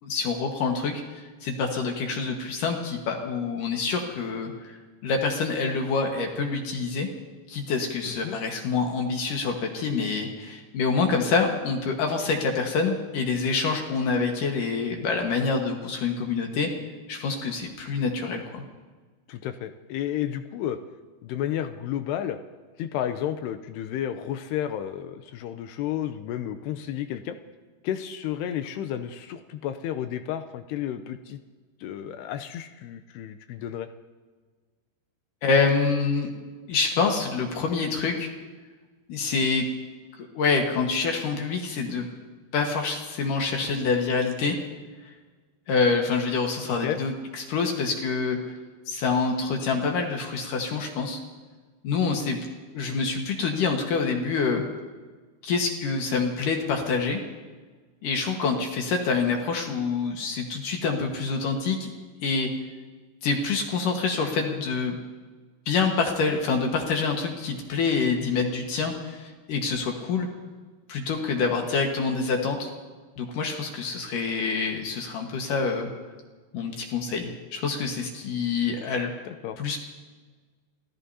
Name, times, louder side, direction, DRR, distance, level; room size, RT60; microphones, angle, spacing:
voice 1, 0.0-1.0 1.4-4.8 5.0-7.1 7.5-16.7 17.1-18.6 35.4-36.3 36.7-38.3 39.1-39.6 40.2-42.1 42.5-44.6 45.7-48.4 48.9-51.2 51.8-52.4 52.7-54.6 55.4-57.2 58.0-61.9 62.2-62.5 63.2-65.0 65.7-70.3 70.9-72.7 73.2-75.9 76.5-79.1 79.6-79.8, left 4 dB, 60° left, 2 dB, 2.5 m, -26 dB
voice 2, 8.0-8.4 19.3-20.8 21.2-22.4 22.8-27.4 27.8-31.4 31.8-33.9 46.8-47.0 79.3-79.6, left 10 dB, 80° left, 9 dB, 2.5 m, -32 dB
28.0 x 17.0 x 2.8 m, 1.4 s
omnidirectional pair, 5.3 m